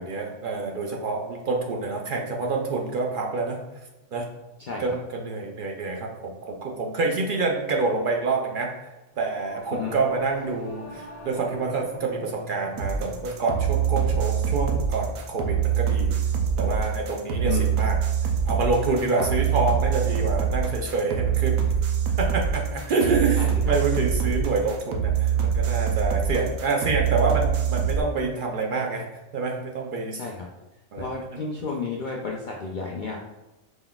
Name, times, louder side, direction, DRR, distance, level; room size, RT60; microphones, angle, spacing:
voice 1, 0.0-3.6 4.1-4.3 4.8-16.2 16.6-18.0 18.5-21.6 22.2-29.1 29.3-30.2 30.9-31.4, right 3 dB, 65° right, 0 dB, 0.5 m, -27 dB
Singing / Musical instrument, 9.3-18.8, equal, 50° left, 0.8 m, -46 dB
sound 1, 12.8-28.0, right 8 dB, 85° right, 1.1 m, -24 dB
voice 2, 23.3-23.7 30.2-30.5 31.0-33.2, left 4 dB, 80° left, -1 dB, 0.4 m, -32 dB
5.1 x 3.9 x 2.3 m, 1.1 s
omnidirectional pair, 1.4 m